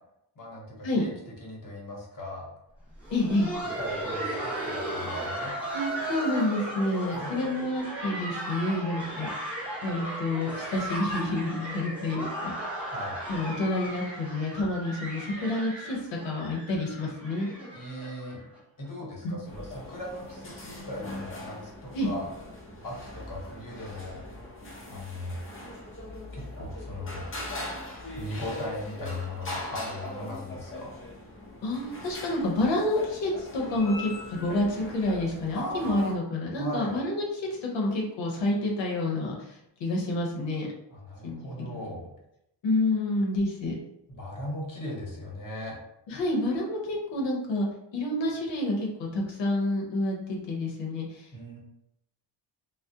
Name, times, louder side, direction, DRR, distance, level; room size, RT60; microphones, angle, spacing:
voice 1, 0.4-1.1 1.4-2.5 3.8-5.5 7.1-7.7 12.9-13.2 17.7-18.5 18.8-22.3 22.8-24.2 24.9-25.4 26.3-27.3 28.2-30.9 35.5-36.2 36.6-36.9 40.9-42.1 44.2-45.8 51.3-51.6, left 1 dB, 50° left, -3 dB, 1.0 m, -38 dB
Laughter, 2.9-18.6 18.8-18.9 19.5-19.7 20.2-20.4 21.5-21.6, right 1 dB, 5° right, 0.8 m, -36 dB
voice 2, 3.1-3.5 5.7-9.4 9.8-12.7 13.3-17.5 19.2-19.4 21.9-22.1 24.6-25.0 31.6-40.7 41.2-41.9 42.6-43.8 46.1-51.3, left 1 dB, 85° left, -1 dB, 0.7 m, -29 dB
sound 1, 19.4-36.2, left 1 dB, 30° left, 0.5 m, -41 dB
3.5 x 2.0 x 2.7 m, 0.82 s
wide cardioid pair, 170°, 43 cm